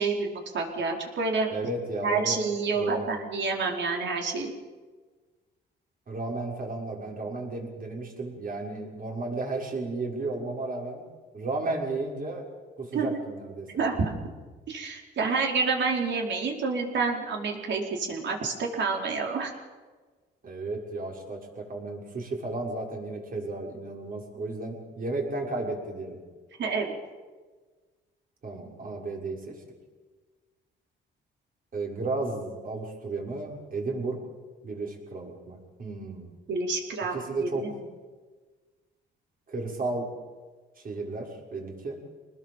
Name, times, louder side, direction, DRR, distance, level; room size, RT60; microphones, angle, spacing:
voice 1, 0.0-1.5 2.0-4.5 12.9-13.2 13.8-14.1 14.7-19.5 26.6-26.9 36.5-37.7, right 4 dB, 65° right, 1 dB, 4.9 m, -28 dB
voice 2, 1.5-2.4 2.8-3.1 6.1-11.0 11.3-12.5 12.8-14.0 20.4-26.2 28.4-29.6 31.7-34.2 34.6-36.3 37.1-37.8 39.5-40.1 40.8-42.0, right 2 dB, 45° right, 0 dB, 6.5 m, -33 dB
26.0 x 20.0 x 7.5 m, 1.4 s
cardioid pair, 90°, 20 cm